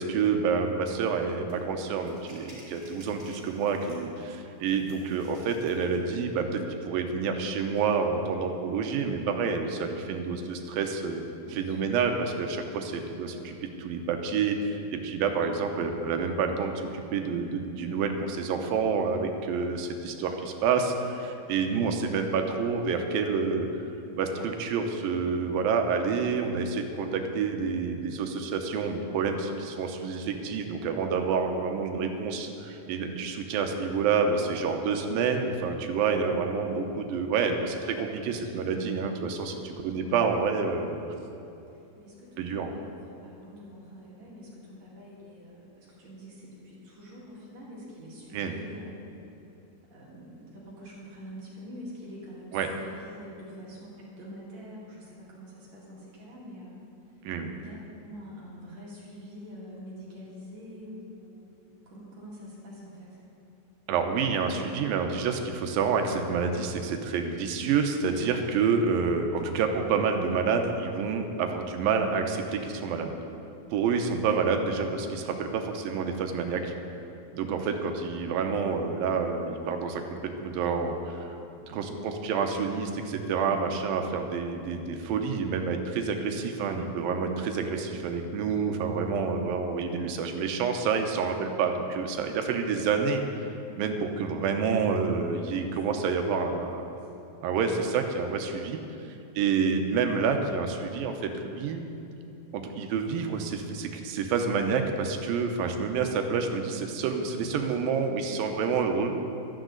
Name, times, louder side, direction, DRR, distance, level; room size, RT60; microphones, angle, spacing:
voice 1, 0.0-11.2 11.5-23.7 24.1-41.0 42.4-42.7 48.3-48.5 52.5-52.7 57.2-57.5 63.9-73.1 73.7-76.7 77.3-81.4 81.7-93.2 93.8-96.9 97.4-98.8 99.4-101.8 102.5-109.1, right 5 dB, 90° right, 5 dB, 2.7 m, -28 dB
sound 1, 1.5-1.6 2.0-4.2 4.6-6.0, right 1 dB, 35° right, 3.6 m, -54 dB
voice 2, 11.3-11.9 26.4-26.7 38.2-38.9 41.7-49.0 49.9-56.8 57.2-63.2 77.4-77.8 81.8-82.3 87.7-89.2 95.4-96.0 96.5-97.1, equal, 55° right, -5 dB, 3.2 m, -47 dB
15.5 x 12.5 x 3.9 m, 2.8 s
omnidirectional pair, 4.0 m